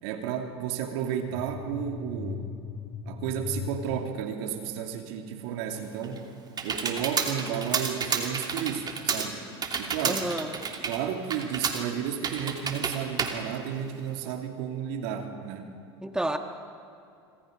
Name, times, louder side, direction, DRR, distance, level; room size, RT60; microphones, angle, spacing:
voice 1, 0.0-2.5 3.0-6.3 6.6-9.5 9.8-10.2 10.9-15.7, right 8 dB, 65° right, 4 dB, 2.7 m, -32 dB
sound 1, 1.3-4.1, left 6 dB, 20° left, 1.3 m, -38 dB
Computer keyboard, 5.8-14.3, right 5 dB, 30° right, 2.9 m, -31 dB
voice 2, 10.0-10.6 16.0-16.4, right 1 dB, 5° right, 6 dB, 1.5 m, -30 dB
26.5 x 26.0 x 5.3 m, 2.5 s
hypercardioid pair, 90°, 14 cm